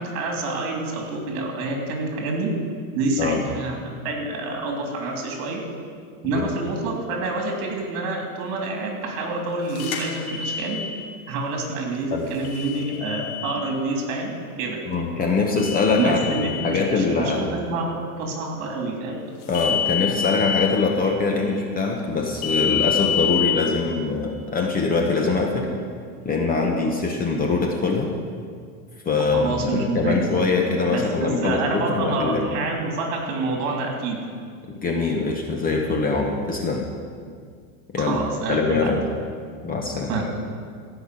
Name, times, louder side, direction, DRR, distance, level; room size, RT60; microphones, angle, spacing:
voice 1, 0.0-2.5 2.9-5.6 6.2-10.8 11.3-14.8 15.9-19.1 29.3-30.2 30.9-34.2 38.0-38.9 40.1-40.2, right 3 dB, 50° right, 1 dB, 3.3 m, -27 dB
sound 1, 9.8-10.9 12.4-13.5 15.6-16.6 19.5-20.6 22.4-23.5, left 8 dB, 65° left, 2.8 m, -26 dB
voice 2, 14.9-17.5 19.5-25.7 26.2-28.1 29.0-32.5 34.8-36.9 37.9-38.2 38.5-39.0 39.6-40.1, left 4 dB, 20° left, 2 dB, 1.0 m, -23 dB
15.0 x 5.9 x 8.4 m, 2.1 s
supercardioid pair, 140°, 45 cm